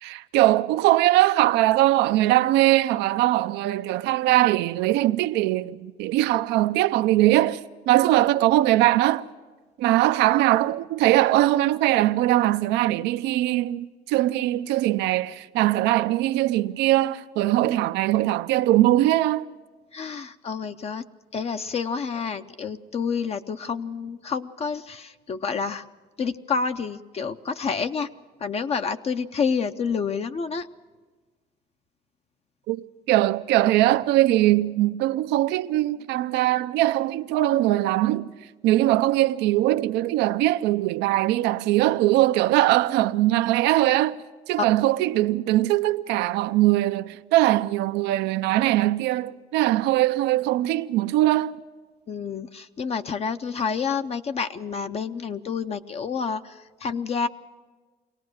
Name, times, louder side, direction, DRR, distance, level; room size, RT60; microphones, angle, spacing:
voice 1, 0.0-7.6 7.9-9.2 9.8-19.4 32.7-38.3 38.6-44.2 44.5-51.5, right 15 dB, 90° right, 0.5 m, -21 dB
voice 2, 19.9-21.1 21.3-25.9 26.2-28.1 28.4-30.7 52.1-57.3, left 5 dB, 35° left, 0.6 m, -29 dB
23.0 x 18.0 x 6.4 m
cardioid pair, 110°, 17 cm